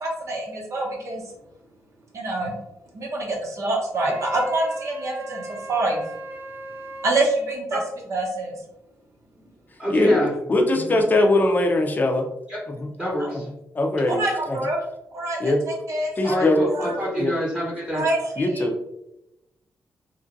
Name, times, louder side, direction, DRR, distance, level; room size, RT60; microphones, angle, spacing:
voice 1, 0.0-1.2 2.1-2.6 2.9-5.4 5.7-6.0 7.0-7.8 8.1-8.6 13.0-13.3 14.1-14.8 15.1-17.0 17.9-18.6, right 2 dB, 65° right, -1 dB, 0.9 m, -26 dB
Wind instrument woodwind instrument, 3.9-7.3, right 2 dB, 35° right, 0.5 m, -37 dB
voice 2, 9.8-10.3 10.7-11.0 12.5-12.6 13.0-13.5 16.2-18.0, left 1 dB, 10° right, -6 dB, 0.9 m, -26 dB
voice 3, 10.5-12.3 13.7-14.2 14.5-14.6 15.4-15.6 16.2-16.7 17.2-17.3 18.4-18.8, left 2 dB, 30° left, 4 dB, 0.5 m, -20 dB
2.9 x 2.5 x 2.6 m, 0.87 s
cardioid pair, 85°, 6 cm